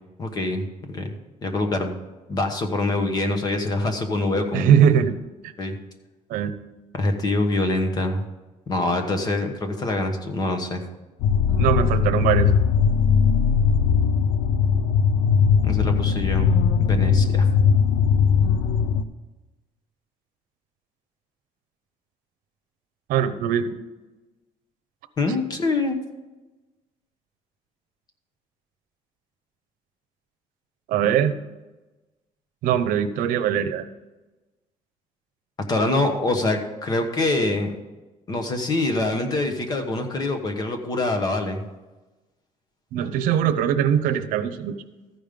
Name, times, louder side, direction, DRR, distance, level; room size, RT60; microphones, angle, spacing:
voice 1, 0.2-1.1 1.4-1.9 2.3-4.7 5.6-5.8 7.0-8.2 8.7-10.8 15.6-16.5 16.8-17.5 25.2-26.0 35.7-37.7 38.3-41.6, left 2 dB, 30° left, 6 dB, 1.1 m, -25 dB
voice 2, 4.5-5.2 6.3-6.5 11.6-12.5 23.1-23.8 30.9-31.4 32.6-33.9 42.9-44.8, right 9 dB, 85° right, 9 dB, 0.8 m, -21 dB
sound 1, 11.2-19.0, left 6 dB, 90° left, 0.6 m, -19 dB
14.0 x 5.3 x 5.2 m, 1.1 s
cardioid pair, 170°, 14 cm